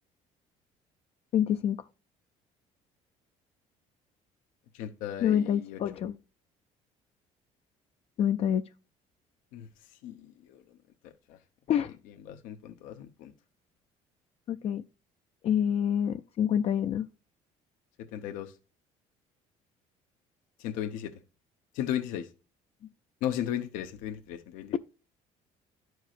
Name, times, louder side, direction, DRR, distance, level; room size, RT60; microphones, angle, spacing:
voice 1, 1.3-1.8 5.2-6.1 8.2-8.6 11.7-11.9 14.5-14.8 15.4-17.1, left 9 dB, 50° left, 0.4 m, -27 dB
voice 2, 4.7-5.8 9.5-9.7 10.0-10.6 11.0-11.4 12.2-13.3 18.1-18.5 20.6-21.1 21.7-22.3 23.2-24.7, left 10 dB, 90° left, 0.8 m, -35 dB
11.5 x 4.6 x 2.4 m
cardioid pair, 120°, 13 cm